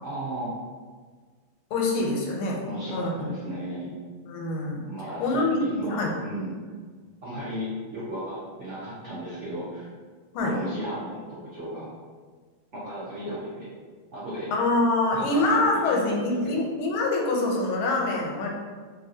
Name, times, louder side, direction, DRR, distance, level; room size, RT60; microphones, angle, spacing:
voice 1, 0.0-0.5 2.6-4.0 4.9-6.6 7.2-9.9 10.4-11.9 12.7-13.7 14.1-14.5 15.1-15.6 15.8-16.6, equal, 60° right, -11 dB, 0.7 m, -35 dB
voice 2, 1.7-2.6 2.9-3.3 4.3-4.9 5.2-6.1 10.3-10.6 13.3-13.4 14.5-18.5, left 2 dB, 85° left, 0 dB, 1.5 m, -25 dB
3.2 x 2.6 x 2.6 m, 1.5 s
omnidirectional pair, 2.2 m